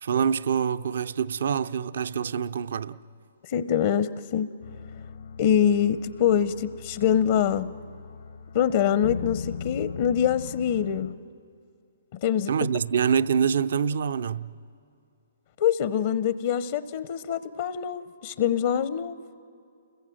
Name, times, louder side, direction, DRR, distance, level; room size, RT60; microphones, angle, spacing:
voice 1, 0.0-3.0 12.5-14.5, right 7 dB, 65° right, 0.6 m, -25 dB
voice 2, 3.4-4.5 5.4-7.7 8.5-11.2 12.1-12.5 15.6-19.2, left 9 dB, 50° left, 0.7 m, -24 dB
sound 1, 4.6-11.1, left 6 dB, 75° left, 1.3 m, -39 dB
30.0 x 21.5 x 7.7 m
hypercardioid pair, 135°, 0 cm